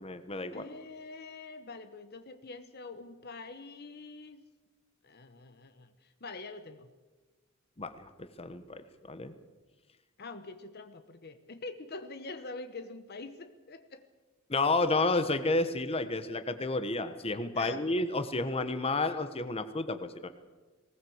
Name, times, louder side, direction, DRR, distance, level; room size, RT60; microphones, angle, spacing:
voice 1, 0.0-0.6 7.8-8.8 9.1-9.3 14.5-20.3, left 2 dB, 30° left, 10 dB, 1.2 m, -31 dB
voice 2, 0.5-4.4 5.0-5.9 6.2-6.9 10.2-14.0 17.5-18.0, left 3 dB, 50° left, 10 dB, 1.0 m, -45 dB
19.5 x 19.0 x 7.9 m, 1.3 s
head